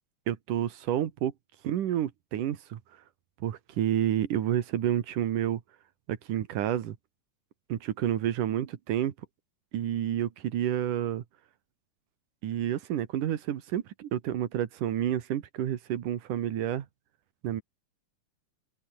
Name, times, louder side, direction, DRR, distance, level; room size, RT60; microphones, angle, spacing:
voice 1, 0.3-1.3 1.6-2.8 3.4-5.6 6.1-7.0 7.7-9.1 9.7-11.2 12.4-16.9 17.4-17.6, right 11 dB, 85° right, 3.2 m, -29 dB
omnidirectional pair, 3.6 m